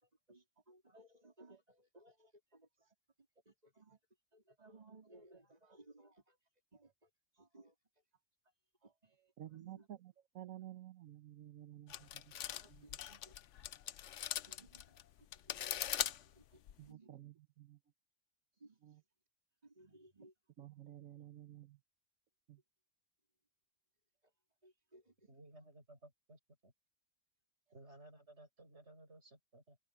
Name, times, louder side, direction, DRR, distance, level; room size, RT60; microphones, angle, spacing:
voice 1, 0.0-2.9 3.5-4.0 4.3-6.4 6.7-7.8 8.8-9.3 9.6-9.9 12.6-13.3 13.8-13.9 14.3-15.0 15.3-15.8 16.2-17.1 18.6-18.8 19.6-20.3 24.6-25.3, right 2 dB, 30° right, 4.2 m, -62 dB
voice 2, 9.4-12.3 12.7-13.0 16.8-17.8 18.8-19.0 20.6-21.8 22.5-22.6, right 12 dB, 85° right, 1.3 m, -53 dB
sound 1, 11.9-16.9, left 11 dB, 65° left, 1.0 m, -41 dB
voice 3, 25.3-26.7 27.7-29.8, right 1 dB, 55° right, 7.5 m, -59 dB
open air
omnidirectional pair, 1.4 m